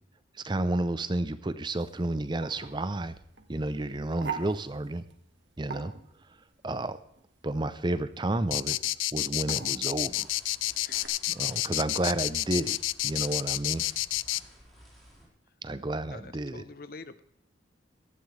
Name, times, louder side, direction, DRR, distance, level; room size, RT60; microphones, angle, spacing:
voice 1, 0.3-3.2 3.5-5.0 5.6-5.9 6.2-6.4 6.6-7.0 7.4-8.8 9.1-10.3 11.3-12.8 13.0-13.9 15.6-16.6, right 2 dB, 25° right, 13 dB, 0.6 m, -31 dB
sound 1, 1.8-11.1, right 6 dB, 70° right, 1.8 m, -45 dB
sound 2, 8.5-14.4, left 17 dB, 85° left, 0.4 m, -29 dB
sound 3, 10.0-15.3, equal, ahead, 4.7 m, -54 dB
voice 2, 10.8-11.3 16.1-17.2, left 3 dB, 50° left, 14 dB, 0.7 m, -46 dB
17.5 x 13.0 x 3.3 m, 0.73 s
head